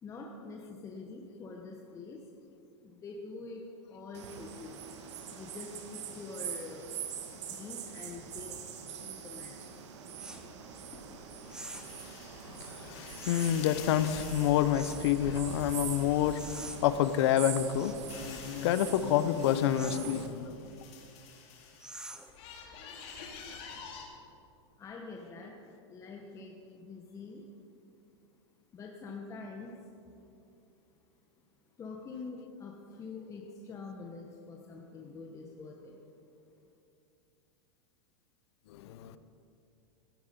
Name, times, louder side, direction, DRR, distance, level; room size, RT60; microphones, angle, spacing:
voice 1, 0.0-2.3 2.8-4.8 5.3-6.9 7.3-8.6 8.9-9.7 24.8-27.4 28.7-29.8 31.8-36.0, left 3 dB, 20° left, 0 dB, 1.1 m, -45 dB
sound 1, 4.1-20.3, right 7 dB, 75° right, 1.7 m, -43 dB
sound 2, 10.2-17.1 17.5-21.9 22.3-24.0, left 6 dB, 45° left, 2.4 m, -49 dB
sound 3, 10.2-10.5 11.5-12.0 13.2-13.6 14.7-15.1 16.4-16.8 17.8-18.1 19.8-20.1 21.8-22.4, right 2 dB, 5° right, 0.7 m, -45 dB
voice 2, 12.7-20.5 38.7-39.2, left 10 dB, 65° left, 13 dB, 0.8 m, -28 dB
15.5 x 10.5 x 5.4 m, 2.7 s
supercardioid pair, 135°, 15 cm